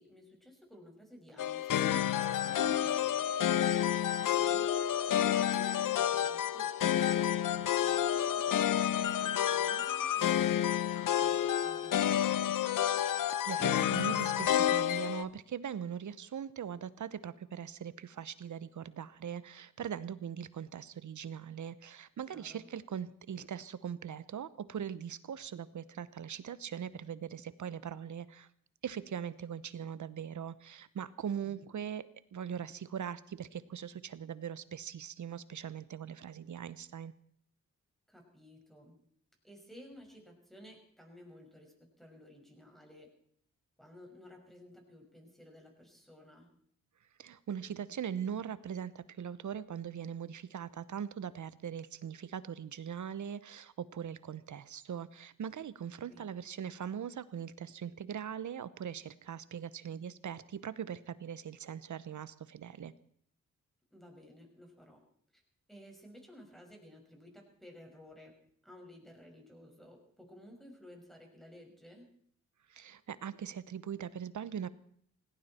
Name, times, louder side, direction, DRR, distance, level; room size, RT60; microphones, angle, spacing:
voice 1, 0.0-3.3 4.3-4.8 5.1-12.6 22.3-22.7 31.4-31.6 38.1-38.9 39.4-43.1 43.8-46.5 56.1-56.5 63.9-65.0 65.3-65.4 65.7-68.3 68.6-72.1, equal, ahead, 2 dB, 6.0 m, -55 dB
sound 1, 1.4-15.2, left 10 dB, 75° left, 0.8 m, -29 dB
voice 2, 13.0-28.5 28.8-37.1 47.2-62.9 72.7-74.7, right 8 dB, 65° right, 16 dB, 1.0 m, -41 dB
18.0 x 17.5 x 4.4 m, 0.64 s
cardioid pair, 65°, 32 cm